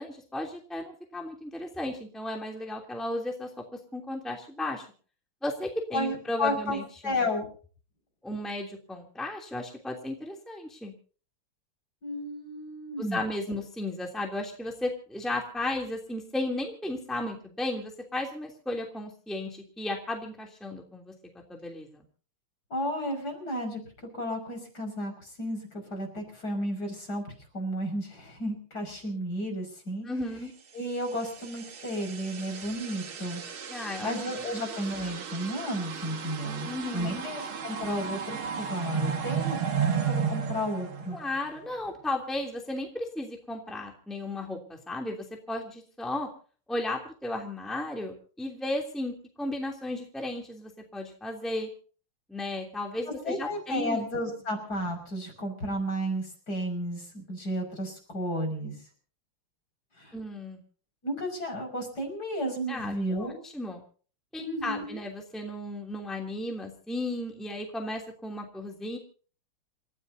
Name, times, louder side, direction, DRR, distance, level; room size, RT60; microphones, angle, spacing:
voice 1, 0.0-3.5 3.9-4.8 5.4-7.3 8.2-10.9 13.0-21.1 21.5-22.0 30.0-30.5 33.7-34.2 36.6-37.2 41.1-46.3 46.7-51.7 52.3-54.0 60.1-60.6 62.7-63.8 64.3-69.0, left 1 dB, ahead, 1 dB, 2.9 m, -34 dB
voice 2, 5.9-6.8 7.0-7.5 12.0-13.2 22.7-23.8 24.2-25.1 25.4-25.6 25.9-27.2 27.5-30.1 30.7-33.4 34.0-36.7 36.9-39.6 40.1-41.2 53.2-58.7 60.0-60.1 61.0-63.4 64.4-65.0, equal, 45° left, 3 dB, 6.5 m, -32 dB
sound 1, 31.0-41.7, right 7 dB, 70° right, 2.6 m, -34 dB
29.0 x 15.0 x 2.8 m, 0.42 s
omnidirectional pair, 2.4 m